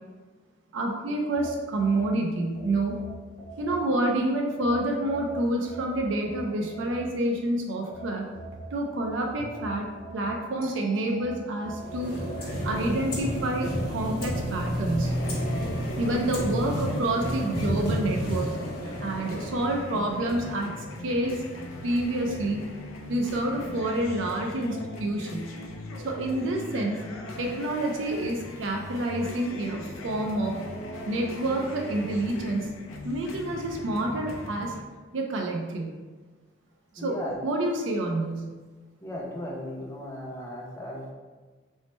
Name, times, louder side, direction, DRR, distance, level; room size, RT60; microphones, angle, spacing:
voice 1, 0.7-3.0 3.6-8.3 8.7-9.9 10.1-12.2 12.6-15.2 16.0-18.6 19.0-21.4 21.8-22.7 23.1-25.5 26.0-27.0 27.4-30.6 31.1-32.7 33.0-34.7 35.1-35.9 36.9-38.5, right 1 dB, 70° right, 1 dB, 0.4 m, -28 dB
sound 1, 1.3-4.1 4.6-7.4 7.9-10.7 11.2-12.8, right 1 dB, 35° right, 0.7 m, -45 dB
sound 2, 11.7-19.9, equal, 45° left, 1.0 m, -31 dB
sound 3, 15.0-34.8, left 1 dB, 85° left, 0.4 m, -40 dB
voice 2, 37.0-37.4 39.0-41.1, left 1 dB, 15° left, -3 dB, 0.5 m, -36 dB
3.1 x 2.0 x 4.1 m, 1.4 s
head